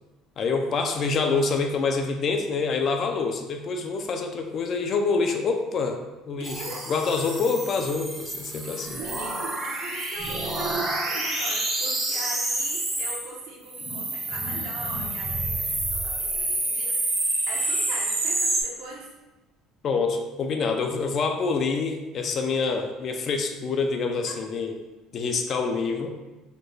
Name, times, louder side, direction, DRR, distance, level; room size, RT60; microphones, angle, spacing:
voice 1, 0.4-6.0 6.3-9.0 19.8-24.7 25.1-26.2, left 4 dB, 35° left, 5 dB, 0.4 m, -26 dB
sound 1, 6.4-13.3 13.7-18.6, right 2 dB, 20° right, 0.7 m, -28 dB
voice 2, 6.4-6.9 8.9-17.2 17.5-19.1 24.3-24.4, right 3 dB, 75° right, -2 dB, 0.9 m, -40 dB
4.2 x 2.2 x 3.1 m, 1.1 s
cardioid pair, 150°, 0 cm